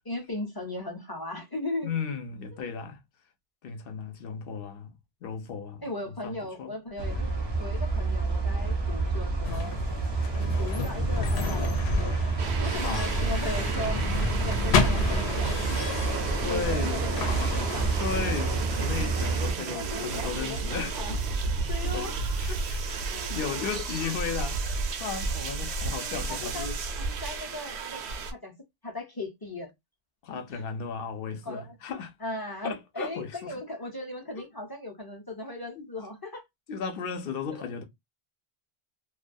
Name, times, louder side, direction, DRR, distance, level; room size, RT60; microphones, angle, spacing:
voice 1, 0.0-1.9 5.8-7.3 7.6-9.8 10.6-12.1 12.6-18.0 19.7-21.2 21.7-22.2 23.1-24.1 26.0-26.7 27.0-28.0 28.3-28.5 28.8-29.7 30.5-30.6 31.4-31.8 32.2-36.4 37.5-37.7, left 2 dB, 30° left, 0.4 m, -38 dB
voice 2, 1.8-3.0 3.6-4.9 5.2-5.8 6.2-6.7 12.7-13.1 16.4-17.1 18.0-21.0 21.8-22.1 22.4-26.8 30.2-32.1 32.6-33.5 35.8-35.9 36.7-37.8, left 6 dB, 65° left, 0.8 m, -35 dB
sound 1, 7.0-19.5, right 3 dB, 35° right, 0.4 m, -29 dB
sound 2, 9.4-18.6, left 4 dB, 85° left, 0.9 m, -32 dB
sound 3, 12.4-28.3, right 4 dB, 85° right, 0.8 m, -32 dB
2.3 x 2.2 x 2.5 m
omnidirectional pair, 1.1 m